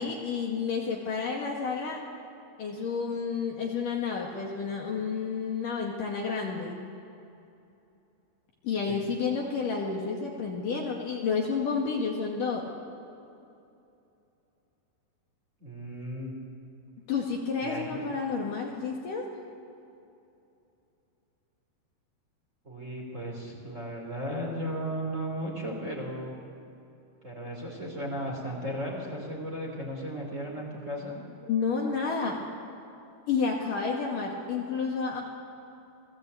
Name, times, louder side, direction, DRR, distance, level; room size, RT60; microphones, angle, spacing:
voice 1, 0.0-2.0 2.6-6.8 8.6-12.6 17.1-19.3 31.5-32.4 33.3-35.2, left 5 dB, 55° left, -1 dB, 3.2 m, -30 dB
voice 2, 15.6-16.3 17.6-18.1 22.6-26.3 27.2-31.2, equal, 15° right, -1 dB, 3.8 m, -35 dB
29.5 x 19.0 x 8.5 m, 2.7 s
omnidirectional pair, 5.1 m